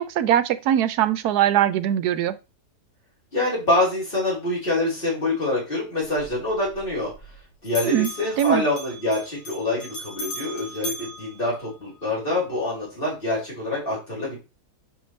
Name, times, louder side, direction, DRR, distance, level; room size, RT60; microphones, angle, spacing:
voice 1, 0.0-2.4 7.8-8.1 8.4-8.6, right 11 dB, 75° right, 1.1 m, -21 dB
voice 2, 3.3-7.1 7.6-14.4, left 2 dB, 30° left, 4.7 m, -25 dB
Bell, 6.0-7.4 7.6-12.1, equal, 55° left, 2.6 m, -38 dB
7.7 x 5.5 x 3.1 m
omnidirectional pair, 1.8 m